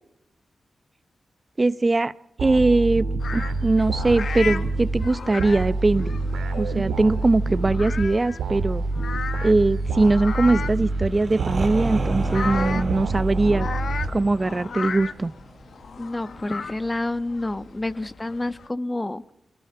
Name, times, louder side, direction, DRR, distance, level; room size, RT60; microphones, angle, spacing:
voice 1, 1.6-2.1 2.4-3.1 3.3-6.1 6.6-8.8 9.4-13.7 14.1-15.3, right 2 dB, 35° right, 15 dB, 0.7 m, -21 dB
sound 1, 2.4-14.6, right 3 dB, 90° right, 2.2 m, -27 dB
sound 2, 3.2-18.7, left 5 dB, 70° left, 1.0 m, -36 dB
sound 3, 10.6-16.3, right 4 dB, 55° right, 1.6 m, -34 dB
voice 2, 16.0-19.2, left 2 dB, 25° left, 12 dB, 1.2 m, -29 dB
26.5 x 20.5 x 5.7 m, 0.84 s
supercardioid pair, 40°, 0 cm